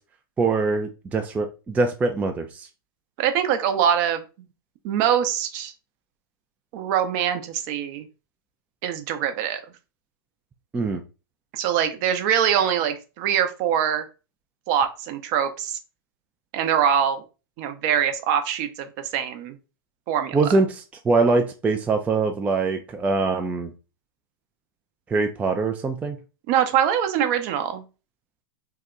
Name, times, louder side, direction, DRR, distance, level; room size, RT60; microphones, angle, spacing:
voice 1, 0.4-2.7 10.7-11.0 20.3-23.7 25.1-26.2, right 3 dB, 10° right, 4 dB, 0.3 m, -23 dB
voice 2, 3.2-4.2 4.8-5.7 6.7-8.0 8.8-9.6 11.5-14.1 14.7-15.8 16.5-17.2 17.6-19.6 20.1-20.4 26.5-27.8, right 9 dB, 45° right, 8 dB, 0.6 m, -23 dB
2.8 x 2.1 x 3.6 m, 0.31 s
hypercardioid pair, 120°, 13 cm